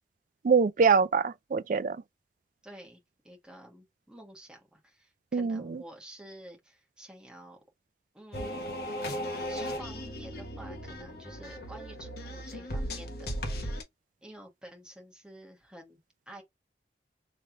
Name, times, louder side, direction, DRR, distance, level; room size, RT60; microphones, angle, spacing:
voice 1, 0.4-2.0 5.3-5.8, right 5 dB, 45° right, 0.4 m, -24 dB
voice 2, 2.6-7.6 8.1-8.6 8.9-9.0 9.5-13.7 14.2-16.0 16.3-16.4, right 1 dB, 5° right, 1.4 m, -50 dB
sound 1, 8.3-13.8, equal, 60° left, 1.3 m, -36 dB
3.3 x 2.9 x 3.8 m
head